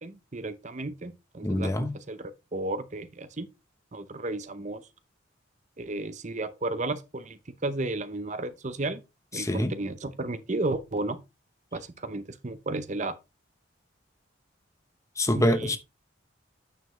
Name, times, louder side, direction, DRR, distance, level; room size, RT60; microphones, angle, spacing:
voice 1, 0.0-3.5 3.9-4.8 5.8-9.0 9.3-11.2 11.7-13.2 15.3-15.8, right 2 dB, 35° right, 0.7 m, -33 dB
voice 2, 1.4-1.9 9.4-9.7 15.2-15.8, left 1 dB, 15° left, 0.8 m, -25 dB
9.4 x 6.8 x 3.1 m
head